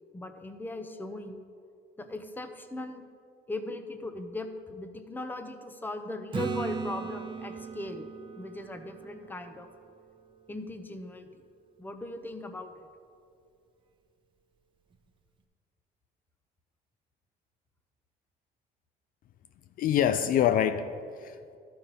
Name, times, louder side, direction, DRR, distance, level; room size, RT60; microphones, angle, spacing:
voice 1, 0.1-1.4 2.0-3.1 3.5-8.1 8.4-9.7 10.5-11.4 11.8-12.7, left 2 dB, 10° left, 7 dB, 0.7 m, -39 dB
Acoustic guitar / Strum, 6.3-10.1 14.9-15.0, right 5 dB, 30° right, 0.8 m, -38 dB
voice 2, 19.8-21.6, left 9 dB, 55° left, 10 dB, 0.4 m, -26 dB
12.5 x 4.4 x 5.3 m, 2.4 s
cardioid pair, 110°, 17 cm